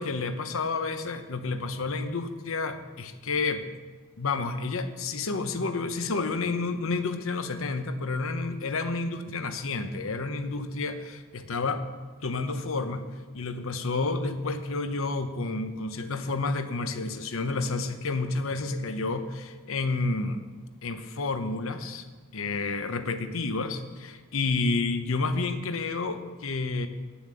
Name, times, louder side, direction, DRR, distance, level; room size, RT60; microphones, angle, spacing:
voice 1, 0.0-3.6 4.2-11.8 12.2-13.0 13.3-20.4 20.8-22.0 22.3-26.9, left 3 dB, 65° left, 9 dB, 0.8 m, -30 dB
10.0 x 7.1 x 7.6 m, 1.4 s
head